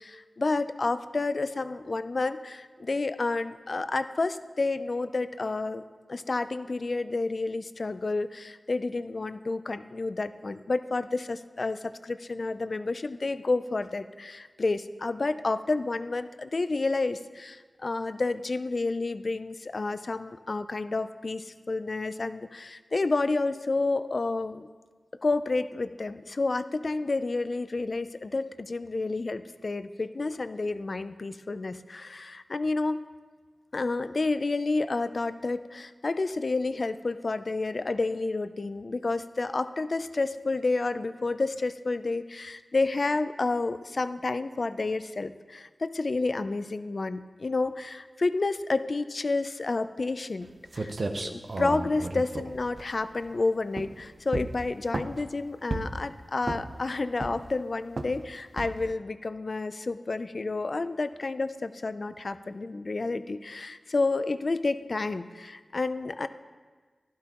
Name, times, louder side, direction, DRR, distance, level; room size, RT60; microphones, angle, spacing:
voice 1, 0.0-5.8 6.1-24.7 25.2-33.0 33.7-50.5 50.7-66.3, left 3 dB, 55° left, 12 dB, 0.4 m, -30 dB
sound 1, 50.4-50.5 50.7-53.3 53.7-54.0 54.3-55.3 55.7-56.1 56.4-56.8 57.2-57.6 58.0-58.2 58.6-58.9, right 2 dB, 55° right, 0.7 m, -33 dB
12.0 x 11.5 x 3.0 m, 1.4 s
cardioid pair, 45°, 0 cm